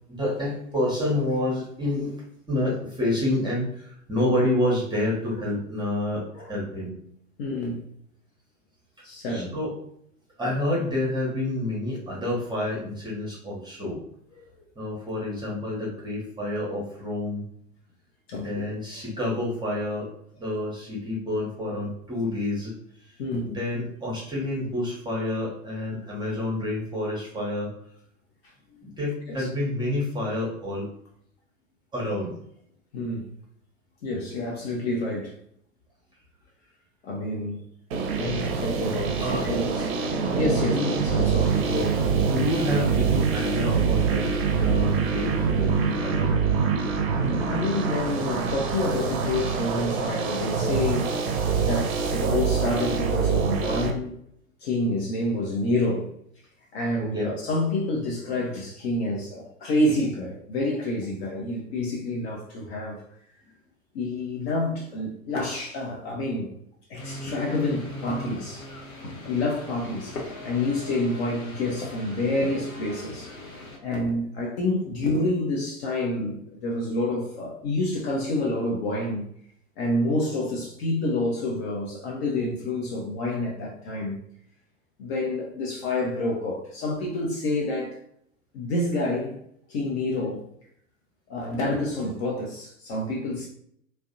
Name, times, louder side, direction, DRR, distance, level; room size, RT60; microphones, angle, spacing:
voice 1, 0.1-2.1 2.5-6.2 6.5-6.9 9.3-9.7 10.4-14.0 14.8-17.4 18.3-20.1 20.4-23.1 23.5-27.7 28.8-30.9 31.9-32.3 39.2-39.4 40.7-40.9 42.2-46.3 57.0-57.3, left 1 dB, 10° right, 0.7 m, -28 dB
voice 2, 7.4-7.9 9.0-9.6 18.3-18.6 23.2-23.5 28.7-28.9 29.3-29.5 32.9-33.3 34.0-35.4 37.0-37.7 38.2-40.0 40.3-42.2 47.0-47.2 47.5-51.2 51.6-54.2 54.6-56.1 56.7-63.0 63.9-66.5 66.9-68.7 69.3-73.5 73.8-79.3 79.8-84.2 85.0-88.0 88.5-89.4 89.7-90.4 91.3-93.5, left 2 dB, 50° left, 0.6 m, -28 dB
sound 1, 37.9-53.9, right 5 dB, 50° right, 0.5 m, -25 dB
sound 2, 67.0-73.8, left 1 dB, 80° left, 0.8 m, -39 dB
2.5 x 2.1 x 2.5 m
figure-of-eight pair, 95°, 41 cm